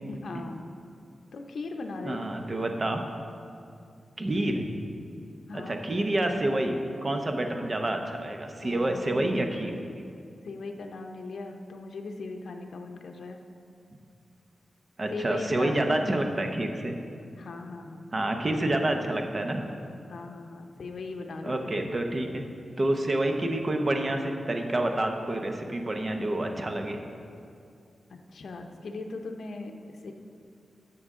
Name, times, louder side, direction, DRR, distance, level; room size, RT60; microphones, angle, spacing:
voice 1, 0.1-0.7 1.3-2.3 5.5-5.9 8.6-9.4 10.4-13.4 15.1-16.1 17.4-18.1 20.1-21.7 28.1-30.1, left 3 dB, 75° left, 3 dB, 0.7 m, -39 dB
voice 2, 2.0-3.0 4.2-4.7 5.5-9.7 15.0-16.9 18.1-19.7 21.4-22.4 22.8-27.0, right 1 dB, 30° right, 4 dB, 0.7 m, -28 dB
12.5 x 7.0 x 3.7 m, 2.4 s
wide cardioid pair, 150°, 0 cm